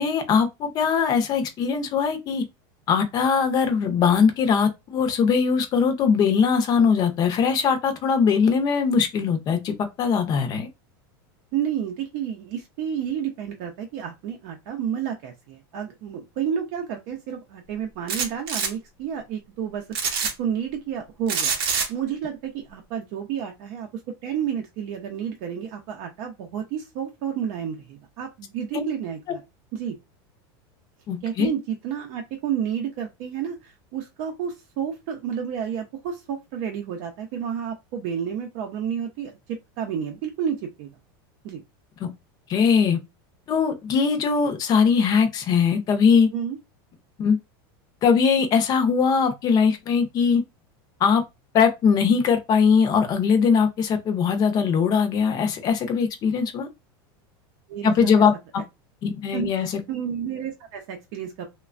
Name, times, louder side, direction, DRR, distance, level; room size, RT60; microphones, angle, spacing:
voice 1, 0.0-2.4 2.9-10.7 28.7-28.8 31.1-31.5 42.5-43.0 43.5-46.3 47.2-47.4 48.0-50.4 51.0-51.2 51.5-56.7 57.8-58.3 59.0-59.8, left 6 dB, 30° left, 0.6 m, -21 dB
voice 2, 11.5-29.4 29.7-29.9 31.2-40.9 41.4-41.6 46.3-46.6 57.7-58.3 59.3-61.4, right 8 dB, 55° right, 0.6 m, -31 dB
sound 1, 18.1-18.7 19.9-20.3 21.3-21.9, right 6 dB, 85° right, 0.7 m, -25 dB
3.1 x 2.2 x 2.4 m
supercardioid pair, 145°, 12 cm